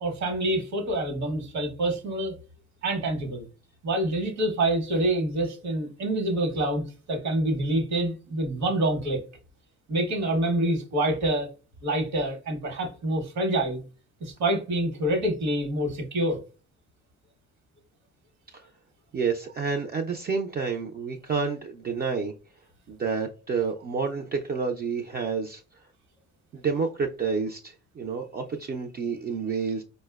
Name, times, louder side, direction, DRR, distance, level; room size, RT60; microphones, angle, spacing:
voice 1, 0.0-2.3 2.8-3.5 3.8-6.8 7.1-9.2 9.9-11.5 11.8-13.8 14.2-16.4, right 1 dB, 65° right, 1.0 m, -26 dB
voice 2, 19.1-22.3 22.9-25.6 26.5-29.8, right 5 dB, 35° right, 0.4 m, -29 dB
4.3 x 2.1 x 2.2 m
cardioid pair, 90°, 30 cm